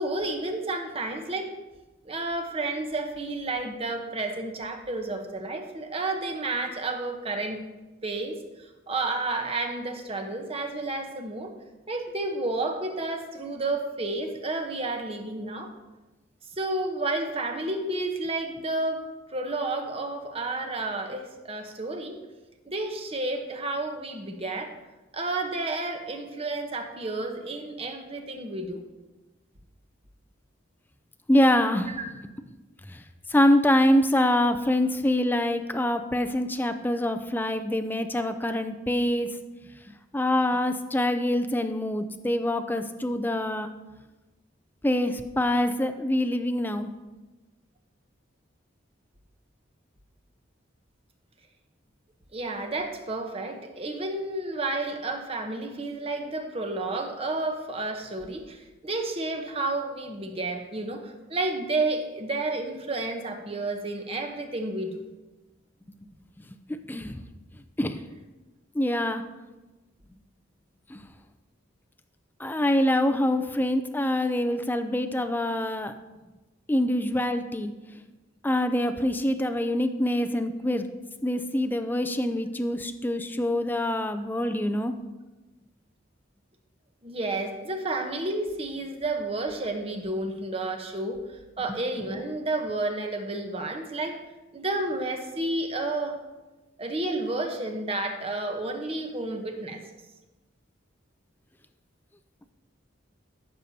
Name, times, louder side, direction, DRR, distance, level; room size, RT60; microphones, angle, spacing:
voice 1, 0.0-1.5 2.0-7.6 8.0-8.4 8.9-11.5 11.9-15.7 16.6-19.0 19.3-22.2 22.7-24.7 25.1-28.8 52.3-65.0 87.0-91.2 91.6-94.2 94.5-96.2 96.8-99.8, right 2 dB, 30° right, 4 dB, 1.0 m, -31 dB
voice 2, 31.3-31.9 32.9-33.0 33.3-39.3 39.9-43.7 44.8-46.9 66.7-67.2 67.8-68.0 68.7-69.2 70.9-71.1 72.4-75.9 76.7-77.7 78.4-80.9 81.2-84.9, left 1 dB, 10° left, 9 dB, 0.4 m, -25 dB
14.5 x 6.8 x 2.8 m, 1.1 s
head